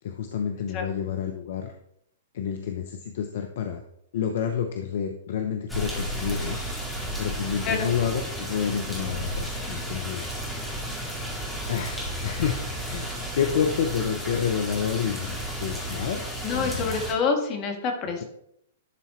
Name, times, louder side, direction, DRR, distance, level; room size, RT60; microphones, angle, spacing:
voice 1, 0.0-1.7 2.3-3.8 4.1-6.6 7.2-10.4 11.0-12.6 12.9-16.2 16.5-16.9, left 7 dB, 60° left, 5 dB, 0.6 m, -29 dB
sound 1, 5.7-17.1, right 1 dB, ahead, 1.8 m, -33 dB
voice 2, 16.4-18.2, left 5 dB, 35° left, 4 dB, 1.6 m, -27 dB
11.0 x 4.1 x 3.1 m, 0.74 s
hypercardioid pair, 115°, 0 cm